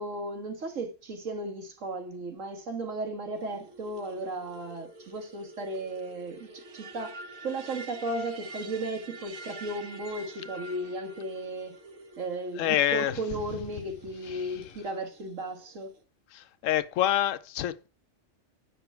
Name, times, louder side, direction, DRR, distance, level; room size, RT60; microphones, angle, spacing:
voice 1, 0.0-7.2 7.4-11.8 12.2-15.9, right 2 dB, 75° right, 1.9 m, -35 dB
sound 1, 3.3-16.0, right 2 dB, 50° right, 1.2 m, -47 dB
voice 2, 12.6-13.2 14.3-14.5 16.3-17.9, left 12 dB, 85° left, 1.0 m, -27 dB
7.9 x 6.0 x 4.4 m
omnidirectional pair, 1.3 m